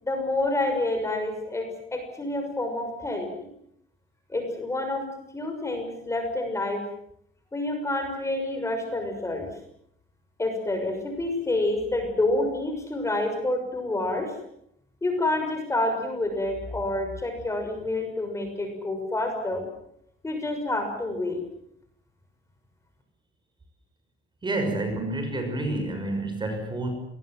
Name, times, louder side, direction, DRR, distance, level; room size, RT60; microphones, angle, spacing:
voice 1, 0.0-3.5 4.3-5.0 5.3-6.8 7.5-9.5 10.4-14.3 15.0-19.7 20.2-21.4, left 2 dB, 15° left, 4 dB, 6.4 m, -28 dB
voice 2, 24.4-26.9, right 2 dB, 20° right, 5 dB, 6.3 m, -29 dB
28.0 x 21.5 x 7.7 m, 0.72 s
cardioid pair, 170°, 21 cm